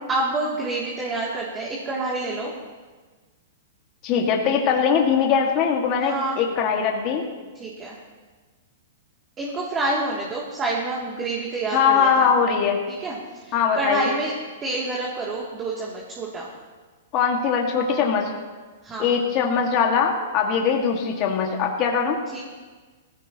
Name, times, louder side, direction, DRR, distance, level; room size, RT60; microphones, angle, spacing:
voice 1, 0.1-2.5 6.0-6.4 7.6-8.0 9.4-12.3 12.9-13.1 13.4-14.3 14.6-16.5 18.8-19.1 20.6-20.8 22.3-22.4, right 2 dB, 25° right, -4 dB, 2.7 m, -28 dB
voice 2, 4.0-7.2 11.7-12.8 13.5-14.1 17.1-18.3 19.0-22.2, left 6 dB, 40° left, 0 dB, 1.9 m, -21 dB
18.0 x 15.5 x 3.0 m, 1.4 s
hypercardioid pair, 125°, 0 cm